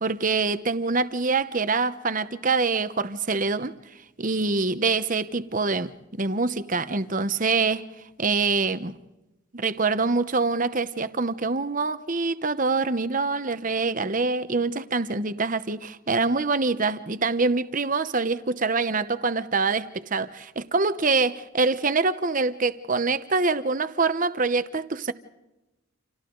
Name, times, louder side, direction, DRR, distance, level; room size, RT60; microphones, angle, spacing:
voice 1, 0.0-3.7 4.2-7.9 8.2-9.0 9.5-25.1, right 4 dB, 40° right, 1.0 m, -25 dB
30.0 x 28.0 x 4.0 m
head